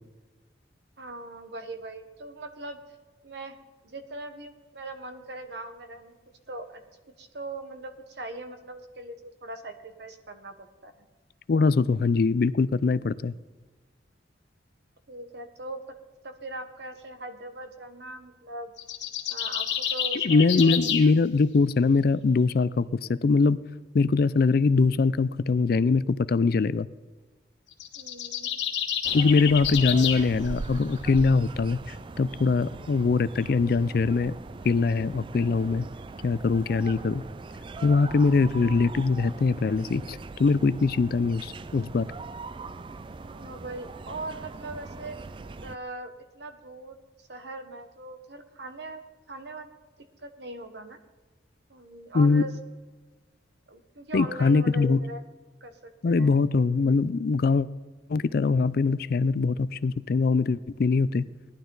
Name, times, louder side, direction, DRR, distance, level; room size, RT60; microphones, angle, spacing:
voice 1, 1.0-2.8 3.2-3.6 3.8-6.2 6.5-6.8 7.2-11.0 15.1-15.8 16.2-18.7 19.3-20.8 28.0-28.6 43.2-45.2 45.6-49.8 50.2-51.0 51.7-52.5 53.7-55.2 55.6-56.3, right 2 dB, 65° right, 8 dB, 1.2 m, -40 dB
voice 2, 11.5-13.3 20.2-23.6 23.9-26.9 29.1-31.8 32.2-34.3 34.6-35.8 36.2-37.2 37.8-42.1 52.1-52.4 54.1-55.0 56.0-57.7 58.1-61.3, left 4 dB, 55° left, 17 dB, 0.4 m, -22 dB
sound 1, 18.8-21.1 27.7-30.2, left 9 dB, 80° left, 1.4 m, -29 dB
sound 2, 29.0-45.8, right 3 dB, 25° right, 0.3 m, -41 dB
17.5 x 11.5 x 3.9 m, 1.3 s
head